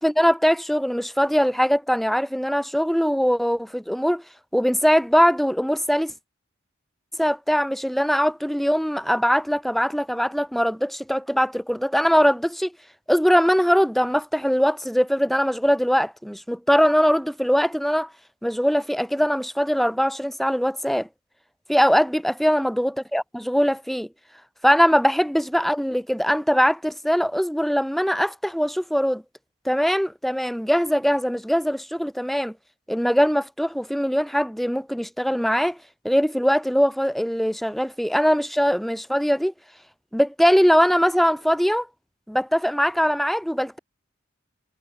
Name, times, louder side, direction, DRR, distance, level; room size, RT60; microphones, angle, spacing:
voice 1, 0.0-4.2 4.5-6.1 7.2-12.7 13.1-18.1 18.4-21.1 21.7-24.1 24.6-29.2 29.6-32.5 32.9-35.8 36.0-39.5 40.1-41.9 42.3-43.8, equal, ahead, 5.9 m, -21 dB
head